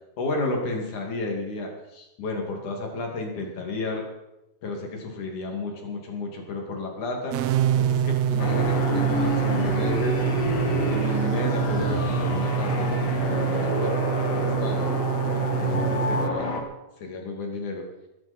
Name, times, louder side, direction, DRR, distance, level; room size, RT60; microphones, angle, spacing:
voice 1, 0.2-4.1 4.6-7.4 7.8-10.2 10.9-14.1 14.3-14.9 15.6-16.7 17.0-17.9, left 2 dB, 80° left, 1 dB, 3.9 m, -32 dB
sound 1, 7.3-16.3, right 9 dB, 70° right, 1.8 m, -26 dB
sound 2, 8.4-16.6, left 1 dB, 50° left, 3.3 m, -28 dB
20.0 x 13.5 x 4.4 m, 0.93 s
omnidirectional pair, 3.4 m